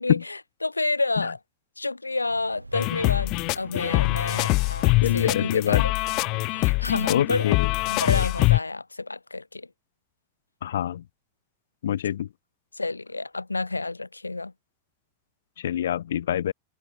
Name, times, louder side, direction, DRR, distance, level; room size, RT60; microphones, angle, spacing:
voice 1, 0.0-1.4 1.8-5.9 6.5-7.5 7.9-9.7 12.7-14.5, left 3 dB, 80° left, 1.7 m, -29 dB
sound 1, 2.2-7.3, right 2 dB, 80° right, 4.9 m, -45 dB
sound 2, 2.7-8.6, left 25 dB, 40° left, 0.4 m, -23 dB
voice 2, 5.0-5.8 7.1-7.7 10.6-11.0 11.8-12.3 15.6-16.5, left 10 dB, 60° left, 2.3 m, -25 dB
figure-of-eight pair, 90°, 0 cm